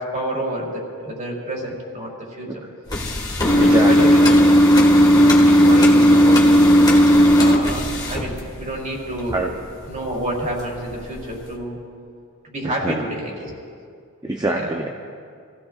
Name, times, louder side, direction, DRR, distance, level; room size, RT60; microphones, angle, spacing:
voice 1, 0.0-2.6 3.2-4.4 5.0-6.5 7.4-9.4 9.9-11.8 12.4-13.5 14.5-14.7, right 1 dB, 35° right, -2 dB, 3.3 m, -29 dB
sound 1, 2.9-8.8 9.2-10.0 10.3-10.6 11.1-11.2 11.5-11.6, equal, 20° left, 1.7 m, -14 dB
voice 2, 3.6-4.2 9.3-9.5 12.6-13.0 14.2-14.9, right 2 dB, 20° right, 1 dB, 0.7 m, -25 dB
27.0 x 16.0 x 2.5 m, 2.2 s
head